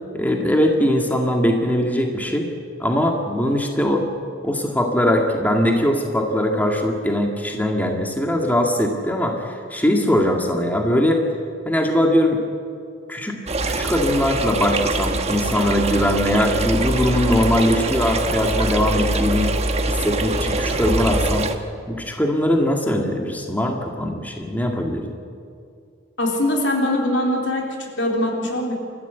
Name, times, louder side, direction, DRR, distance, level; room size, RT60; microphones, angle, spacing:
voice 1, 0.1-2.5 2.8-4.1 4.4-11.3 11.7-12.4 13.1-13.4 13.7-19.5 19.9-21.5 21.9-25.1, left 1 dB, 10° left, 2 dB, 1.9 m, -21 dB
sound 1, 13.5-21.5, right 2 dB, 35° right, 1.3 m, -23 dB
voice 2, 26.2-28.7, left 1 dB, 70° left, 0 dB, 4.0 m, -22 dB
28.5 x 14.0 x 8.1 m, 2.3 s
head